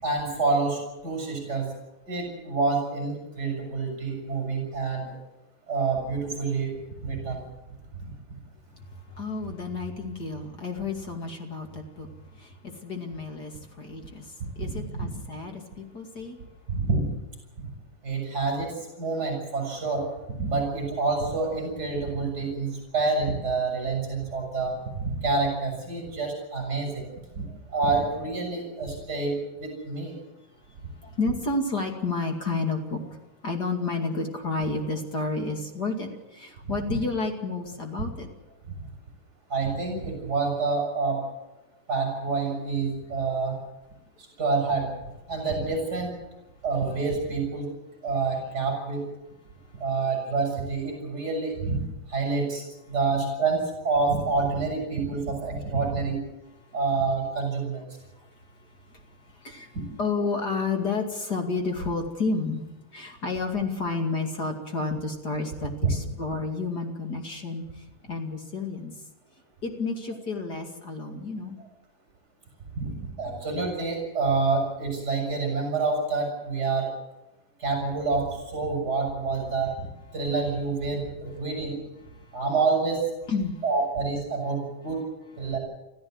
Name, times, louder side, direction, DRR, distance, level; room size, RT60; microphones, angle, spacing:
voice 1, 0.0-1.7 2.1-5.1 5.7-7.4 8.0-8.1 14.6-15.1 16.7-17.0 17.6-17.7 18.0-18.7 19.0-20.0 20.4-27.1 27.4-27.5 27.7-30.2 36.9-37.0 39.5-41.2 41.9-43.6 44.4-44.9 45.3-46.1 46.6-47.7 48.0-49.0 49.8-56.2 56.7-57.8 65.8-65.9 72.8-76.9 77.6-79.9 80.1-81.8 82.3-83.0 83.6-85.0 85.4-85.6, right 4 dB, 30° right, 3 dB, 7.1 m, -27 dB
voice 2, 8.7-16.4 27.5-27.6 31.0-33.2 33.4-38.3 56.7-56.8 58.1-58.3 58.6-62.6 62.9-68.9 69.6-71.6 82.1-82.4 83.3-83.6 85.4-85.5, left 3 dB, 35° left, 3 dB, 2.7 m, -31 dB
25.5 x 15.0 x 7.9 m, 1.0 s
omnidirectional pair, 3.5 m